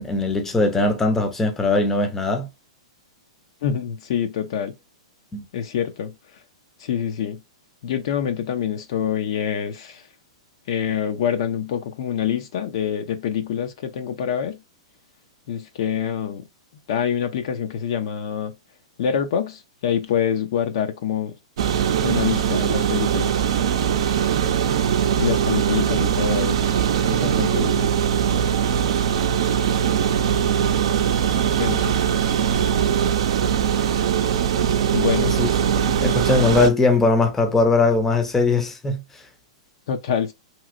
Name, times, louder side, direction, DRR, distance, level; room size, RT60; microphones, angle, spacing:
voice 1, 0.0-2.5 5.3-5.4 35.2-35.5 35.9-39.0, left 3 dB, 10° left, 0.6 m, -20 dB
voice 2, 3.6-4.7 5.5-6.1 6.8-7.4 7.8-10.0 10.7-14.6 15.5-16.4 16.9-18.5 19.0-21.3 22.0-23.3 25.2-26.7 27.1-27.9 31.6-32.0 34.9-35.3 39.9-40.3, left 8 dB, 60° left, 0.6 m, -26 dB
sound 1, 21.6-36.7, right 8 dB, 65° right, 0.5 m, -21 dB
3.0 x 2.8 x 2.5 m
hypercardioid pair, 120°, 3 cm